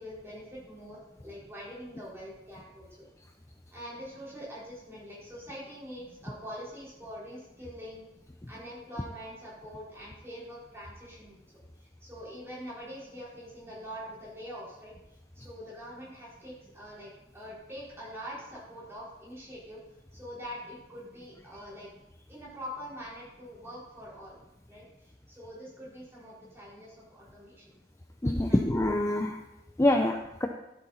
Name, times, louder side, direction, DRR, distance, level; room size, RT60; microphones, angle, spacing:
voice 1, 0.0-3.1 3.7-8.1 8.5-11.4 11.8-14.9 15.3-19.8 20.1-21.9 22.3-24.4 24.7-27.7 28.5-28.6 29.8-30.0, equal, 15° right, -7 dB, 4.7 m, -44 dB
voice 2, 28.2-29.4 29.8-30.5, left 1 dB, 15° left, 3 dB, 0.6 m, -25 dB
12.5 x 7.9 x 4.3 m, 0.90 s
head